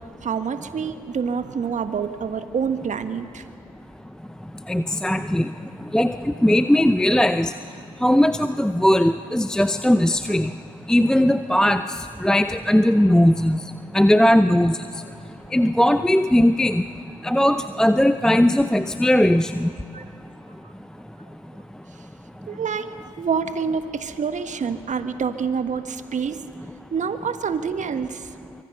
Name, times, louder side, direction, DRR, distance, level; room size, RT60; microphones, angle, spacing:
voice 1, 0.2-3.4 19.9-20.0 22.5-26.4 26.9-28.3, right 6 dB, 45° right, 10 dB, 1.5 m, -27 dB
voice 2, 4.7-5.5 5.9-6.1 6.4-7.5 8.0-10.5 10.9-11.8 12.2-13.6 13.9-14.8 15.5-16.8 17.2-19.7, left 1 dB, 5° left, 11 dB, 0.6 m, -18 dB
24.5 x 24.5 x 5.6 m, 2.7 s
hypercardioid pair, 50°, 18 cm